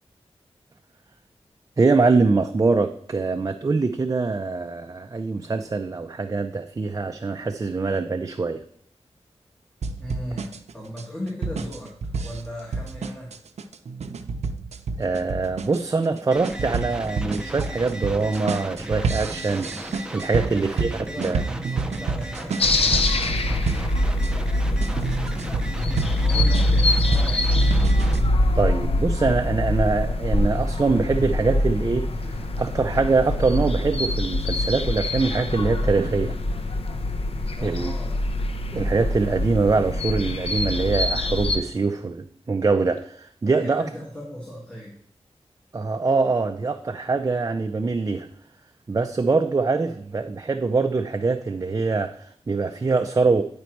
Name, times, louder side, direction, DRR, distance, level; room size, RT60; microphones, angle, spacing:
voice 1, 1.8-8.6 15.0-20.9 21.2-21.5 28.5-36.4 37.6-37.9 38.7-43.8 45.7-48.3 48.9-53.4, right 3 dB, 30° right, 6 dB, 0.5 m, -23 dB
sound 1, 9.8-24.3 24.8-28.3, right 4 dB, 85° right, 0.6 m, -29 dB
voice 2, 10.0-13.3 20.3-24.1 25.9-27.8 37.5-38.1 43.6-44.9, equal, 10° left, -3 dB, 1.7 m, -38 dB
sound 2, 16.3-28.2, right 1 dB, 5° right, 0.8 m, -36 dB
sound 3, 22.6-41.6, left 1 dB, 65° left, 0.7 m, -24 dB
9.7 x 5.2 x 4.6 m, 0.64 s
wide cardioid pair, 120°, 11 cm